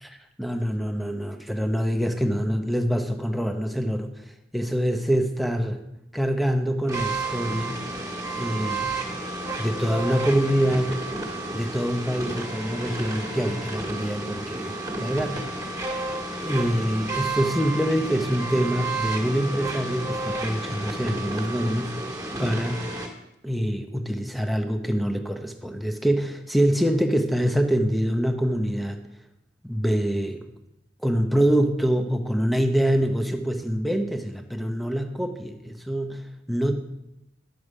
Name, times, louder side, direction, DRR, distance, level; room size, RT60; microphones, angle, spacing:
voice 1, 0.0-4.1 4.5-5.8 6.1-7.8 8.3-9.1 9.6-10.9 11.5-15.4 16.4-21.9 22.4-22.8 23.4-29.0 29.6-30.5 31.0-36.7, equal, ahead, 4 dB, 0.9 m, -25 dB
sound 1, 6.9-23.1, right 2 dB, 20° right, 1.9 m, -31 dB
11.0 x 7.2 x 4.8 m, 0.89 s
head